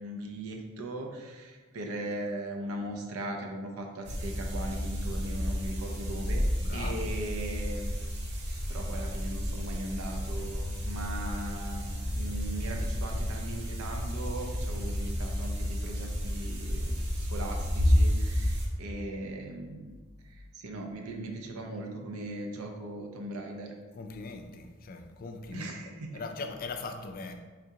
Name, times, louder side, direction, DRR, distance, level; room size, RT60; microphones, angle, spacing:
voice 1, 0.0-6.4 6.7-8.0 8.4-11.9 12.1-19.9 20.6-23.7 25.5-26.1, right 1 dB, 85° right, 2 dB, 0.6 m, -39 dB
sound 1, 4.0-18.7, equal, 50° right, 0.7 m, -31 dB
voice 2, 6.6-7.1 23.9-27.3, left 3 dB, 40° left, 5 dB, 0.3 m, -40 dB
3.7 x 3.4 x 2.8 m, 1.3 s
head